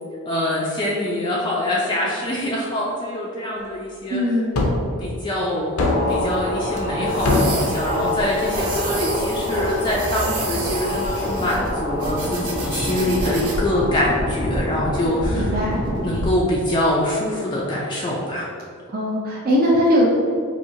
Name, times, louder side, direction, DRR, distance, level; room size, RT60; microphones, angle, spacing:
voice 1, 0.2-4.2 5.0-5.8 6.1-15.5 16.0-18.5, left 1 dB, 20° left, -4 dB, 0.4 m, -24 dB
voice 2, 4.1-4.6 15.3-15.8 18.9-20.1, equal, 45° right, -4 dB, 0.5 m, -20 dB
sound 1, 4.5-4.8 5.8-6.3 7.2-7.7, left 2 dB, 80° left, 0.5 m, -20 dB
sound 2, 5.9-16.3, left 1 dB, 25° right, 1.0 m, -26 dB
sound 3, 6.1-13.6, right 3 dB, 85° right, 0.8 m, -32 dB
4.3 x 2.7 x 2.7 m, 2.3 s
head